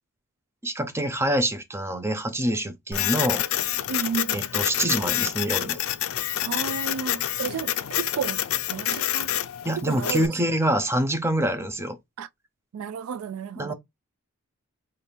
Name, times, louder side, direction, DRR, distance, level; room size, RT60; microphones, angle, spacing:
voice 1, 0.6-3.5 4.3-5.8 9.6-12.0 13.6-13.7, right 1 dB, 10° right, 0.5 m, -26 dB
Printer, 2.9-10.3, left 12 dB, 70° left, 0.4 m, -27 dB
voice 2, 3.9-4.5 6.4-8.4 8.7-9.3 9.8-10.3 12.2-12.3 12.7-13.7, right 6 dB, 80° right, 0.3 m, -32 dB
3.4 x 2.5 x 4.2 m
head